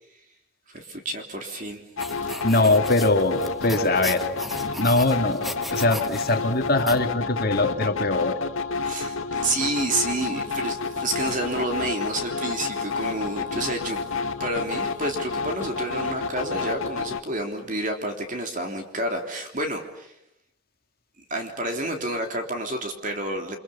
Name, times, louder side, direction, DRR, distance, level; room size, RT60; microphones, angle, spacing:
voice 1, 0.7-1.8 8.8-14.0 14.4-20.1 21.2-23.6, right 1 dB, 40° right, 4 dB, 3.5 m, -29 dB
sound 1, 2.0-17.2, left 4 dB, 90° left, 1.8 m, -30 dB
sound 2, 2.0-7.0, left 1 dB, ahead, 1.3 m, -37 dB
voice 2, 2.4-4.2 4.6-8.3, left 2 dB, 45° left, 5 dB, 2.4 m, -22 dB
30.0 x 26.0 x 7.1 m, 0.77 s
head